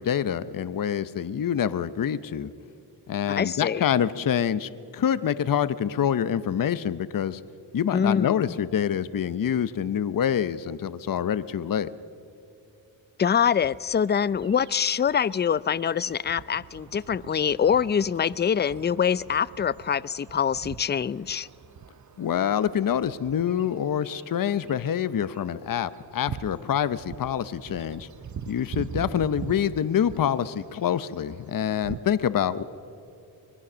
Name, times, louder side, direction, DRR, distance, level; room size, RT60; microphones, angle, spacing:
voice 1, 0.0-2.5 3.1-7.4 7.7-11.9 22.2-28.1 28.5-32.6, left 9 dB, 45° left, 15 dB, 0.8 m, -26 dB
voice 2, 3.4-3.8 7.9-8.5 13.2-21.5, left 7 dB, 25° left, 20 dB, 0.4 m, -24 dB
sound 1, 13.4-32.0, right 8 dB, 40° right, 0.7 m, -43 dB
24.5 x 20.0 x 6.2 m, 2.9 s
cardioid pair, 65°, 46 cm